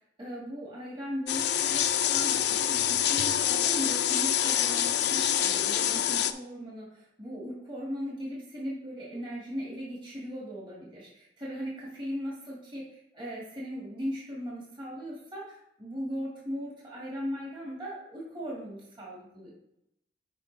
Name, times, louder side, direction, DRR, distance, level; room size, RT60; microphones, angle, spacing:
voice 1, 0.2-19.5, equal, 25° right, -5 dB, 1.9 m, -38 dB
sound 1, 1.3-6.3, left 10 dB, 70° left, 0.4 m, -26 dB
8.9 x 4.9 x 3.3 m, 0.81 s
head